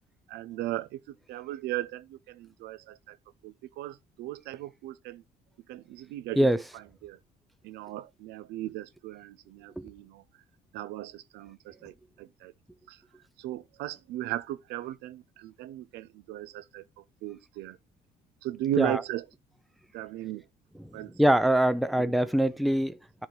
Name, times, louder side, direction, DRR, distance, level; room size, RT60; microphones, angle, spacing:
voice 1, 0.3-3.2 3.4-5.2 5.7-7.2 7.6-10.2 10.7-12.5 12.9-13.0 13.4-17.8 18.4-19.2 19.9-20.4 20.9-21.1 22.0-22.1, right 14 dB, 85° right, 0.6 m, -37 dB
voice 2, 21.2-23.3, right 1 dB, ahead, 0.5 m, -24 dB
10.0 x 3.6 x 4.6 m
cardioid pair, 110°, 17 cm